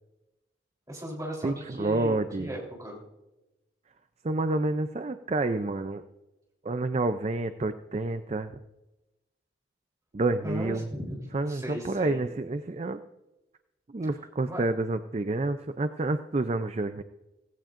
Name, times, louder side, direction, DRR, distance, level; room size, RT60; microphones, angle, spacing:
voice 1, 0.9-3.0 10.4-11.2 11.5-12.2 14.4-14.7, equal, 20° right, -3 dB, 3.6 m, -37 dB
voice 2, 1.4-2.5 4.2-6.0 6.6-8.6 10.1-10.9 11.3-13.0 13.9-17.0, right 2 dB, 35° right, 10 dB, 0.4 m, -29 dB
17.0 x 16.0 x 2.5 m, 1.0 s
head